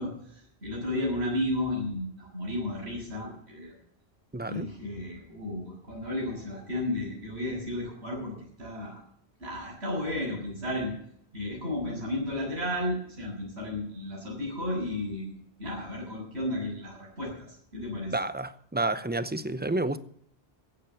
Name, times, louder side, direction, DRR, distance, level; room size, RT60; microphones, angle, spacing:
voice 1, 0.0-3.8 4.5-9.0 9.4-10.9 11.3-18.2, left 1 dB, 85° right, 7.5 m, -33 dB
voice 2, 4.3-4.7 18.1-20.0, right 2 dB, 10° right, 0.6 m, -30 dB
15.5 x 9.0 x 7.1 m
omnidirectional pair, 1.1 m